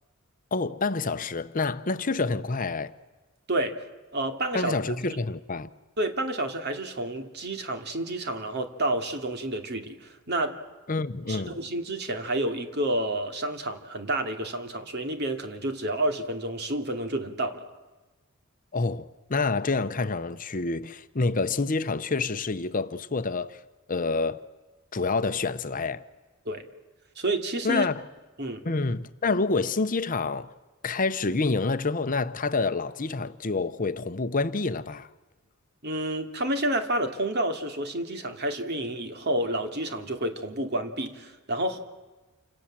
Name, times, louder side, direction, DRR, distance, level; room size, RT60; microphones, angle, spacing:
voice 1, 0.5-2.9 4.5-5.7 10.9-11.6 18.7-23.6 23.9-24.4 24.9-26.0 27.6-28.0 28.6-30.5 30.8-35.1, left 3 dB, 40° left, 0.8 m, -27 dB
voice 2, 3.5-3.8 4.1-4.9 6.0-10.6 11.3-17.7 26.5-26.6 27.2-27.9 28.4-28.6 35.8-41.8, right 1 dB, 50° right, 2.6 m, -29 dB
29.0 x 27.0 x 7.5 m
head